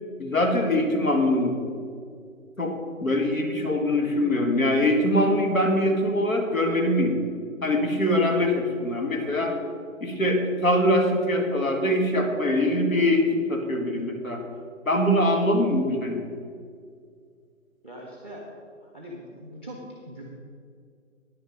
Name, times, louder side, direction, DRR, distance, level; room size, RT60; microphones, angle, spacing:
voice 1, 0.2-1.6 2.6-7.2 7.6-9.6 10.0-14.5 14.9-16.3, left 1 dB, 85° left, 3 dB, 2.1 m, -23 dB
voice 2, 17.8-18.5 18.8-20.2, equal, 10° left, -2 dB, 0.7 m, -41 dB
9.9 x 9.0 x 5.3 m, 2.2 s
figure-of-eight pair, 150°, 40 cm